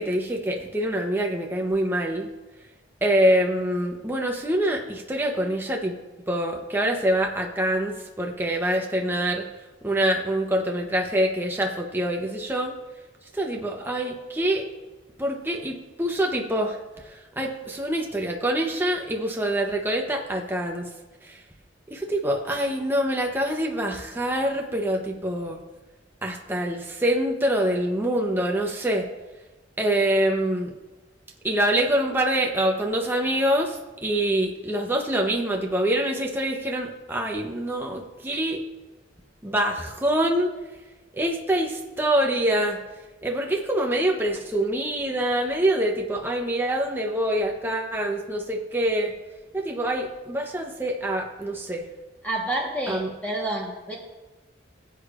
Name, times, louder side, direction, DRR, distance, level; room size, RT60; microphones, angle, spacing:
voice 1, 0.0-2.3 3.0-6.0 6.3-9.5 9.8-12.7 13.3-14.7 15.2-20.9 21.2-21.4 21.9-25.6 26.2-29.1 29.8-30.7 31.4-38.6 39.4-40.5 41.1-42.8 43.2-49.1 49.5-51.9 52.9-53.1, right 1 dB, 10° right, 1 dB, 0.8 m, -25 dB
voice 2, 52.2-53.9, right 1 dB, 10° left, -3 dB, 1.3 m, -29 dB
18.0 x 8.3 x 2.5 m, 1.2 s
head